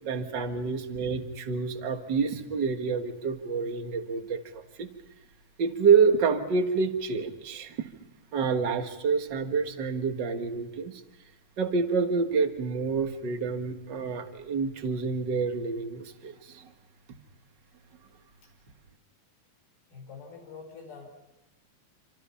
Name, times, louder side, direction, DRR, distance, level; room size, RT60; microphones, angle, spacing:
voice 1, 0.0-4.9 5.6-7.9 8.3-11.0 11.6-16.7, right 5 dB, 50° right, 7 dB, 1.4 m, -28 dB
voice 2, 19.9-21.1, left 5 dB, 80° left, 1 dB, 6.8 m, -46 dB
27.5 x 27.5 x 5.7 m, 0.98 s
omnidirectional pair, 4.3 m